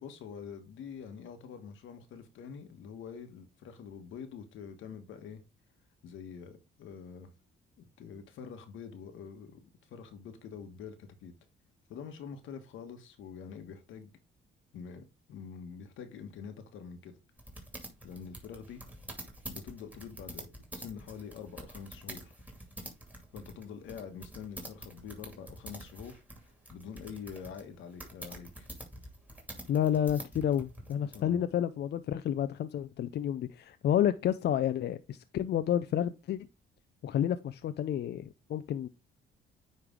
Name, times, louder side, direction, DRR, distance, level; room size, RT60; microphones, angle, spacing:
voice 1, 0.0-5.4 6.0-7.3 7.8-11.3 11.9-14.1 14.7-17.2 18.0-18.8 19.5-22.3 23.3-26.2 26.7-28.7 31.1-31.4, left 7 dB, 80° left, 1.3 m, -46 dB
sound 1, 17.4-31.2, right 1 dB, 5° right, 2.4 m, -46 dB
voice 2, 29.7-36.5 37.0-38.9, left 10 dB, 60° left, 0.5 m, -30 dB
9.4 x 3.3 x 3.6 m
cardioid pair, 90°, 20 cm